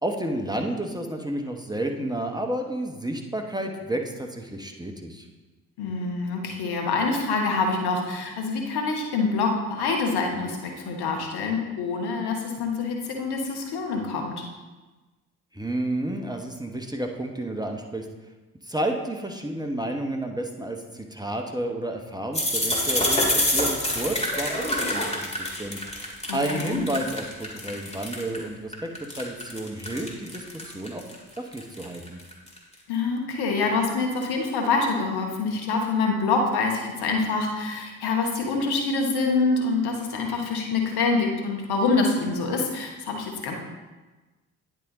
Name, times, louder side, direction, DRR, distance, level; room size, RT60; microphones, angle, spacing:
voice 1, 0.0-5.3 15.5-18.1 18.6-31.0 31.4-32.2, right 1 dB, 10° right, 3 dB, 1.0 m, -31 dB
voice 2, 5.8-14.4 26.3-26.9 32.9-43.5, left 4 dB, 60° left, 2 dB, 1.3 m, -26 dB
sound 1, 22.3-28.4 28.7-32.6, left 1 dB, 15° left, 2.1 m, -27 dB
10.0 x 3.7 x 4.0 m, 1.2 s
hypercardioid pair, 45°, 43 cm